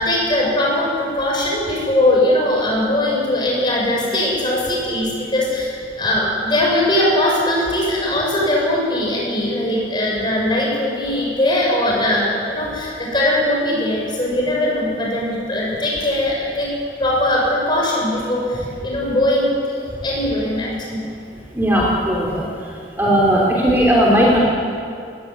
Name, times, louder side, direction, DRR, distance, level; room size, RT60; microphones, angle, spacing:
voice 1, 0.0-16.7 17.0-21.1, left 1 dB, 25° left, -3 dB, 7.5 m, -20 dB
voice 2, 21.5-22.4 23.0-24.4, equal, 15° right, -3 dB, 3.3 m, -16 dB
20.0 x 18.0 x 9.7 m, 2.4 s
head